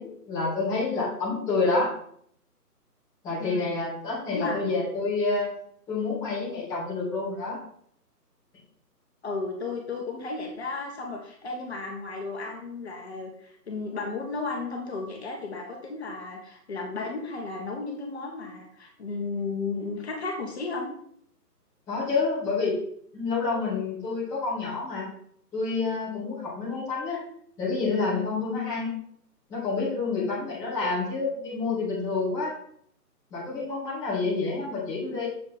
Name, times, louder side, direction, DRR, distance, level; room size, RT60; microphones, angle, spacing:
voice 1, 0.0-1.9 3.2-5.5 5.9-7.6 21.9-22.8 23.1-25.1 25.5-27.2 27.6-29.0 29.5-32.5 33.3-35.3, left 3 dB, 5° left, -9 dB, 1.5 m, -28 dB
voice 2, 3.4-3.7 4.3-4.6 9.2-20.9, left 3 dB, 40° left, 0 dB, 1.5 m, -34 dB
7.1 x 4.6 x 4.2 m, 0.65 s
figure-of-eight pair, 155°, 48 cm